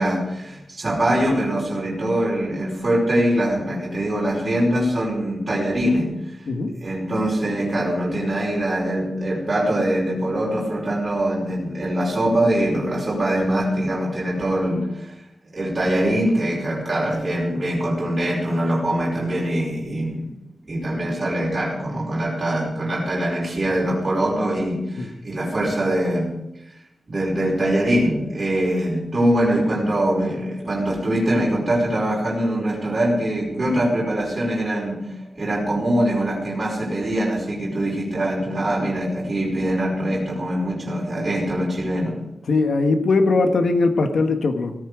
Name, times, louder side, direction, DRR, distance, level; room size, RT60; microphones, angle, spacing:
voice 1, 0.0-6.2 6.8-15.1 15.5-20.3 20.6-26.3 27.1-42.2, right 1 dB, 30° right, -4 dB, 5.2 m, -23 dB
voice 2, 42.5-44.7, left 3 dB, 65° left, 6 dB, 1.5 m, -20 dB
17.5 x 14.0 x 5.0 m, 0.88 s
wide cardioid pair, 160°, 0 cm